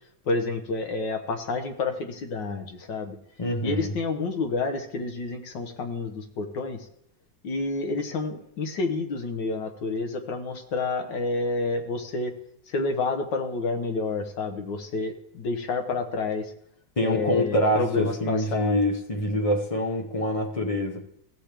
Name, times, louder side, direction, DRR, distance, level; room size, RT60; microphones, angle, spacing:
voice 1, 0.3-3.2 3.6-6.9 7.4-12.3 12.7-16.5 17.0-18.9, left 3 dB, 75° left, 6 dB, 1.7 m, -29 dB
voice 2, 3.4-3.9 17.0-21.0, equal, 35° left, 2 dB, 0.5 m, -25 dB
15.0 x 7.5 x 3.4 m, 0.70 s
omnidirectional pair, 2.0 m